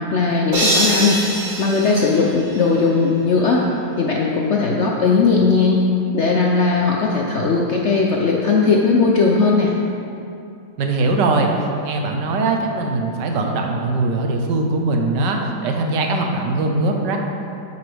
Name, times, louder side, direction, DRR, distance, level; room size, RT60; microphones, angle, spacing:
voice 1, 0.0-3.7 4.0-5.8 6.1-9.7, left 4 dB, 65° left, -1 dB, 0.7 m, -18 dB
sound 1, 0.5-2.9, right 1 dB, 30° right, 1.3 m, -23 dB
voice 2, 10.8-11.5 11.8-17.2, right 2 dB, 85° right, 2 dB, 1.5 m, -21 dB
10.0 x 6.8 x 3.4 m, 2.6 s
omnidirectional pair, 1.9 m